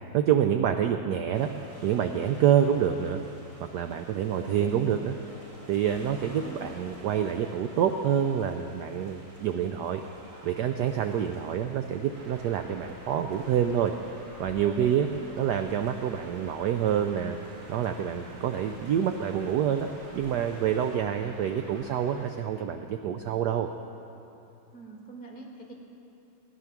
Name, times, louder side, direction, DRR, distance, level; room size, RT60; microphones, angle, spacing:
voice 1, 0.1-1.5 1.8-3.2 3.7-5.2 5.7-10.0 10.4-13.9 14.4-15.1 15.4-17.4 17.7-23.7, right 9 dB, 80° right, 6 dB, 0.9 m, -27 dB
sound 1, 1.3-21.0, right 1 dB, 20° right, 1.0 m, -50 dB
voice 2, 6.3-6.9 14.9-15.4 24.7-25.7, right 3 dB, 5° left, -1 dB, 1.0 m, -45 dB
sound 2, 12.1-22.3, right 1 dB, 55° right, 2.3 m, -50 dB
16.5 x 9.9 x 6.0 m, 2.9 s
omnidirectional pair, 2.4 m